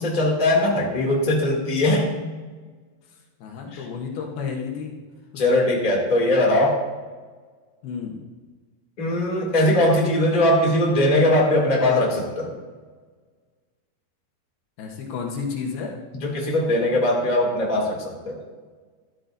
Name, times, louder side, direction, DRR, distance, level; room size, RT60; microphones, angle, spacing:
voice 1, 0.0-2.1 3.7-3.8 5.4-6.8 9.0-12.5 16.2-18.4, left 1 dB, 15° left, -2 dB, 1.8 m, -20 dB
voice 2, 3.4-4.9 5.3-5.4 7.8-8.2 14.8-16.0, left 5 dB, 75° left, 1 dB, 2.9 m, -31 dB
13.5 x 13.0 x 2.7 m, 1.4 s
omnidirectional pair, 4.7 m